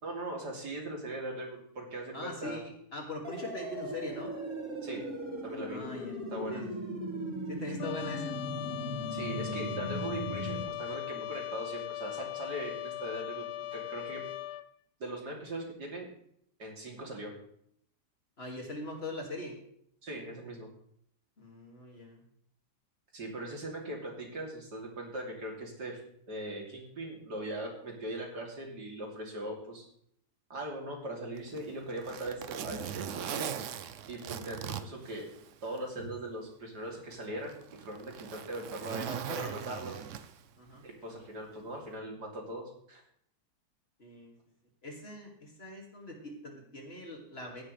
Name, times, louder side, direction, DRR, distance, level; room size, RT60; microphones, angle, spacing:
voice 1, 0.0-2.6 4.8-5.0 5.4-5.8 6.3-6.6 9.1-13.4 13.7-14.2 15.0-16.1 16.6-17.3 20.0-20.7 23.1-26.0 26.3-29.9 30.5-33.5 34.1-35.3 35.6-39.1 39.4-40.0 40.8-43.0, right 1 dB, 80° right, -1 dB, 3.6 m, -40 dB
voice 2, 2.1-4.3 5.7-6.2 6.5-6.7 7.5-8.4 18.4-19.6 21.4-22.3 39.0-39.6 40.6-40.9 44.0-44.3 44.8-47.6, left 2 dB, 40° left, 1 dB, 2.5 m, -42 dB
sound 1, 3.2-10.6, right 1 dB, 35° right, 2.0 m, -38 dB
Trumpet, 7.8-14.7, left 13 dB, 80° left, 1.1 m, -39 dB
Zipper (clothing), 31.4-35.8 36.2-36.3 37.1-40.6 41.7-41.9, right 9 dB, 60° right, 0.9 m, -40 dB
15.5 x 11.0 x 3.3 m, 0.67 s
omnidirectional pair, 1.7 m